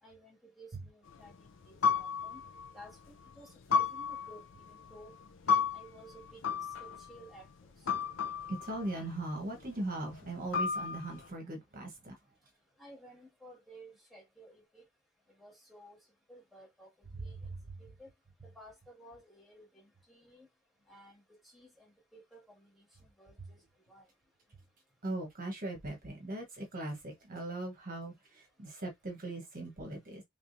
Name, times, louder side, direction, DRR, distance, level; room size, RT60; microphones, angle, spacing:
voice 1, 0.0-2.4 2.7-3.0 3.4-5.1 5.5-6.4 6.8-7.5 12.8-14.9 15.4-16.0 16.3-16.9 17.2-17.3 17.8-18.1 18.4-20.5 20.9-24.0, right 1 dB, ahead, 1.9 m, -55 dB
sound 1, 1.1-3.3 3.7-7.2 7.9-9.1 9.5-9.7 10.2-10.3 10.5-11.2, left 6 dB, 70° left, 0.5 m, -33 dB
voice 2, 8.5-12.1 25.0-30.2, right 2 dB, 45° right, 1.1 m, -39 dB
3.5 x 3.3 x 2.6 m
head